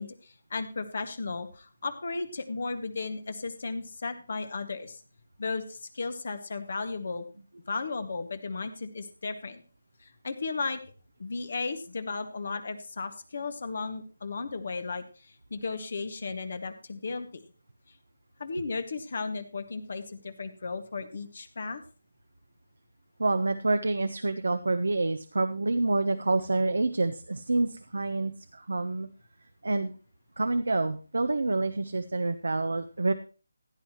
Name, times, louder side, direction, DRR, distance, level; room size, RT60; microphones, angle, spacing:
voice 1, 0.0-5.0 5.4-7.3 7.7-9.6 10.0-10.8 11.2-17.4 18.4-21.8, left 4 dB, 55° left, 9 dB, 1.8 m, -35 dB
voice 2, 23.2-29.1 29.6-29.9 30.4-33.1, right 2 dB, 75° right, 8 dB, 1.0 m, -27 dB
16.0 x 10.0 x 3.0 m, 0.34 s
figure-of-eight pair, 155°, 0 cm